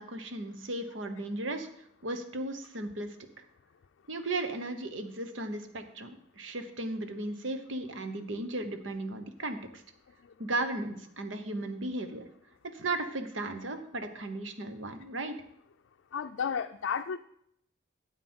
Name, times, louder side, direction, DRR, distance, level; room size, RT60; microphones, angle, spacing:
voice 1, 0.0-1.7 2.0-3.1 4.1-9.8 10.4-12.3 12.6-15.4, right 2 dB, 85° right, 8 dB, 1.0 m, -36 dB
voice 2, 16.1-17.2, left 6 dB, 75° left, 6 dB, 0.4 m, -33 dB
9.3 x 7.9 x 4.4 m, 0.70 s
head